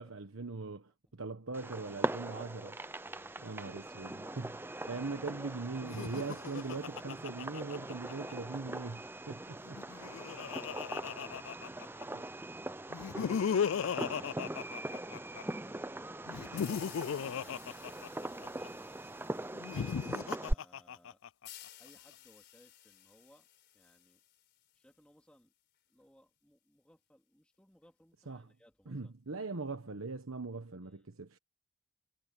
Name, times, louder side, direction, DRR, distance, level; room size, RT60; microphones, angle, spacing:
voice 1, 0.0-2.8 3.4-4.5 4.9-9.8 12.1-12.2 28.3-28.5 28.9-31.4, right 3 dB, 85° right, 1.2 m, -41 dB
Fireworks, 1.5-20.5, right 1 dB, 10° right, 0.5 m, -41 dB
voice 2, 3.0-5.7 11.3-12.4 15.8-19.4 19.7-21.2 21.8-23.5 23.7-24.2 24.7-25.5 25.9-29.1 30.8-31.1, equal, 5° left, 3.4 m, -65 dB
Laughter, 5.8-8.3 9.7-12.0 12.9-15.4 16.3-18.7 19.5-21.5, left 7 dB, 70° left, 0.4 m, -36 dB
sound 1, 16.6-20.0 21.4-24.9, left 13 dB, 55° left, 4.8 m, -55 dB
head